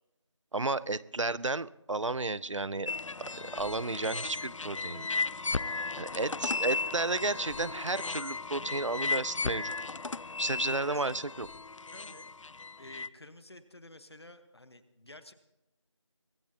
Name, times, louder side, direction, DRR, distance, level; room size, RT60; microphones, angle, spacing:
voice 1, 0.5-2.9 3.4-5.1 6.0-9.7 10.4-11.5, right 3 dB, 70° right, 19 dB, 0.7 m, -32 dB
sound 1, 2.9-13.1, left 4 dB, 80° left, 0.5 m, -35 dB
voice 2, 6.1-6.8 10.7-11.2 11.9-12.3 12.8-15.3, left 1 dB, 55° left, 10 dB, 1.3 m, -51 dB
24.0 x 15.5 x 2.8 m, 0.91 s
figure-of-eight pair, 175°, 16 cm